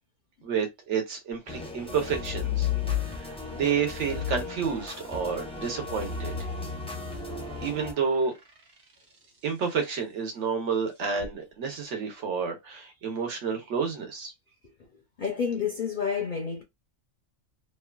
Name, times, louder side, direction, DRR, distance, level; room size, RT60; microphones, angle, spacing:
voice 1, 0.4-2.7 3.1-6.3 7.6-8.3 9.4-14.3, right 6 dB, 65° right, 1.2 m, -30 dB
sound 1, 1.5-7.9, left 3 dB, 5° left, 0.4 m, -38 dB
sound 2, 2.1-3.5 3.9-9.5 11.0-11.3, left 9 dB, 50° right, 1.0 m, -34 dB
voice 2, 15.2-16.6, left 6 dB, 55° left, 0.6 m, -29 dB
2.9 x 2.2 x 2.2 m
omnidirectional pair, 1.3 m